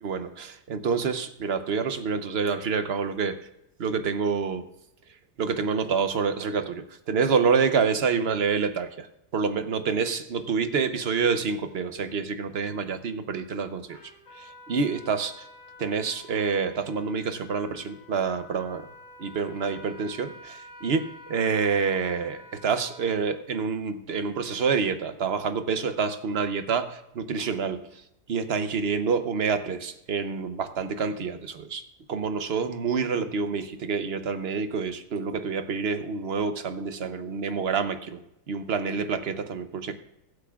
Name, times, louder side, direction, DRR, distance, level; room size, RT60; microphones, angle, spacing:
voice 1, 0.0-3.4 3.8-4.6 5.4-9.1 9.3-14.0 14.4-15.4 15.8-18.9 19.2-27.9 28.3-31.8 32.1-38.2 38.5-39.9, right 5 dB, 50° right, 9 dB, 0.9 m, -27 dB
Trumpet, 13.9-23.4, left 2 dB, 75° left, 4.4 m, -49 dB
21.0 x 8.3 x 2.4 m, 0.85 s
omnidirectional pair, 1.8 m